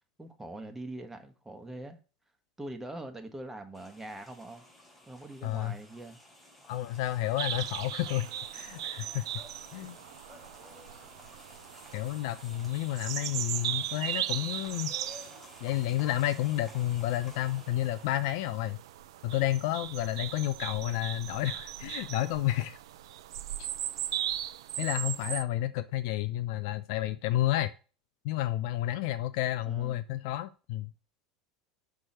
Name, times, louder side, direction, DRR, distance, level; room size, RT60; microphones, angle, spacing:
voice 1, 0.2-2.0 2.6-4.6 5.1-6.2 29.6-30.0, right 1 dB, 10° right, 1.4 m, -43 dB
sound 1, 3.7-18.9, left 1 dB, 5° left, 3.9 m, -53 dB
voice 2, 5.4-5.8 6.7-9.4 9.7-10.0 11.9-14.9 15.6-18.8 19.2-22.8 23.6-23.7 24.8-27.7 28.2-30.9, left 14 dB, 60° left, 0.5 m, -31 dB
sound 2, 7.4-25.4, right 12 dB, 70° right, 0.5 m, -38 dB
6.2 x 4.7 x 5.7 m
hypercardioid pair, 80°, 3 cm